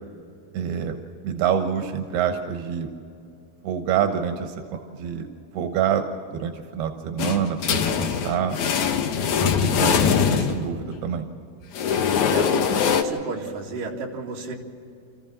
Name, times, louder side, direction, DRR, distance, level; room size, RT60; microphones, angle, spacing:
voice 1, 0.5-1.0 1.2-2.9 3.6-5.3 5.5-8.6 9.4-11.3, right 8 dB, 90° right, 6 dB, 3.1 m, -27 dB
sound 1, 7.2-11.0 11.7-13.0, left 7 dB, 60° left, 2.3 m, -22 dB
voice 2, 12.0-14.6, right 4 dB, 60° right, -1 dB, 3.9 m, -33 dB
29.0 x 14.5 x 7.3 m, 2.5 s
omnidirectional pair, 4.4 m